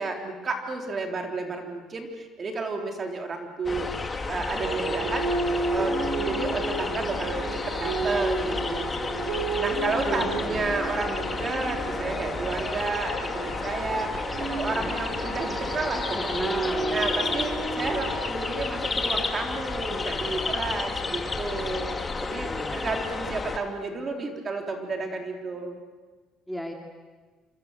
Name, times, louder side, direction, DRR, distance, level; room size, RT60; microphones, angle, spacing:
voice 1, 0.0-3.9 4.3-5.3 5.7-9.0 9.5-14.2 14.5-16.5 16.9-25.8, right 3 dB, 30° right, 3 dB, 3.7 m, -31 dB
sound 1, 3.6-23.6, left 4 dB, 20° left, 2.3 m, -31 dB
sound 2, 4.6-18.3, right 3 dB, 75° right, 7.5 m, -32 dB
voice 2, 10.0-10.7 14.7-15.1 16.1-17.0 22.4-23.0 26.5-26.7, equal, ahead, 2 dB, 2.4 m, -36 dB
27.5 x 26.5 x 8.1 m, 1.4 s
cardioid pair, 130°, 0 cm